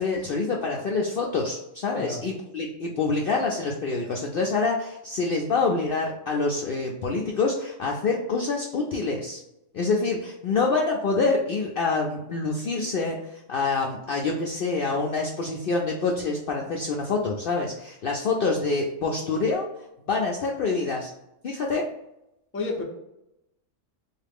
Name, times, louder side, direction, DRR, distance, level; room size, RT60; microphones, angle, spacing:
voice 1, 0.0-9.4 9.7-19.7 20.1-21.1 21.4-21.8, left 3 dB, 60° left, 0 dB, 0.6 m, -26 dB
voice 2, 22.5-22.8, left 3 dB, 15° left, -1 dB, 0.4 m, -30 dB
3.7 x 2.4 x 3.5 m, 0.87 s
omnidirectional pair, 1.4 m